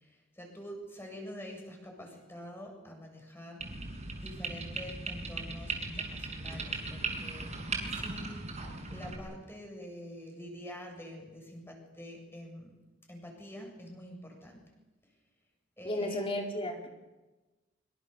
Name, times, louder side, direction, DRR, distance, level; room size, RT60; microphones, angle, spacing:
voice 1, 0.0-7.5 7.9-12.8 13.1-14.7 15.8-16.2, left 1 dB, 10° left, 1 dB, 7.6 m, -46 dB
sound 1, 3.6-9.2, right 3 dB, 35° right, 6.7 m, -38 dB
voice 2, 15.8-16.9, left 1 dB, 30° left, 0 dB, 4.4 m, -33 dB
25.5 x 25.0 x 7.0 m, 1.1 s
head